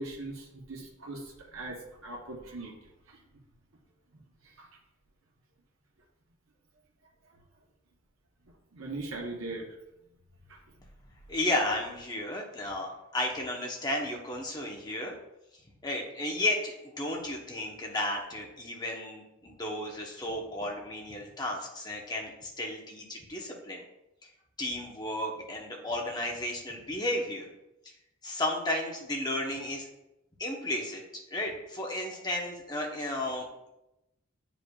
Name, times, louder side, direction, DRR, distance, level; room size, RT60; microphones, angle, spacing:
voice 1, 0.0-2.7 3.1-3.2 4.6-4.7 8.7-9.7 10.5-10.6, right 2 dB, 85° right, -1 dB, 1.0 m, -40 dB
voice 2, 11.3-15.1 15.8-23.8 24.6-27.5 28.2-29.9 30.4-31.0 31.3-33.7, left 1 dB, 20° left, -1 dB, 1.0 m, -33 dB
8.2 x 5.0 x 2.4 m, 0.90 s
head